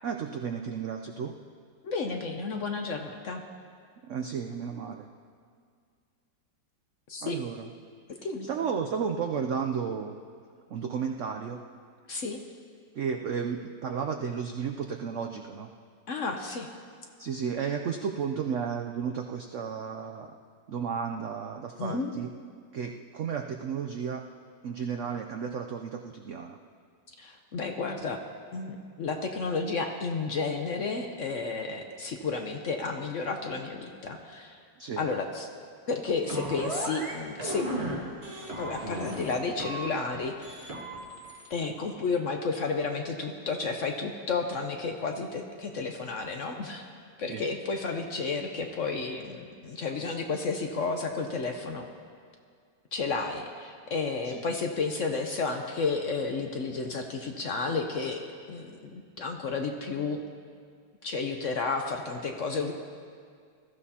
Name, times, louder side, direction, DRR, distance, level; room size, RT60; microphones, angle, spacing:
voice 1, 0.0-1.3 4.0-5.1 7.2-7.7 8.4-10.2 10.7-11.6 12.9-15.7 17.2-20.3 20.7-22.3 22.7-24.2 24.6-26.6 34.8-35.0 47.3-47.4 54.2-54.4, right 6 dB, 90° right, 4 dB, 0.6 m, -33 dB
voice 2, 1.8-3.4 7.1-7.4 8.2-8.5 12.1-12.4 16.1-16.7 21.8-22.1 27.2-28.2 28.5-34.6 35.0-35.5 35.9-37.7 38.6-40.7 41.5-46.9 47.2-51.9 52.9-58.2 58.5-60.2 61.0-62.7, left 4 dB, 60° left, 4 dB, 0.9 m, -32 dB
sound 1, 36.3-37.1 37.4-37.9 38.2-39.3 39.6-40.2 40.4-41.5, right 1 dB, 35° right, 1.9 m, -35 dB
20.5 x 14.0 x 2.8 m, 2.1 s
omnidirectional pair, 2.0 m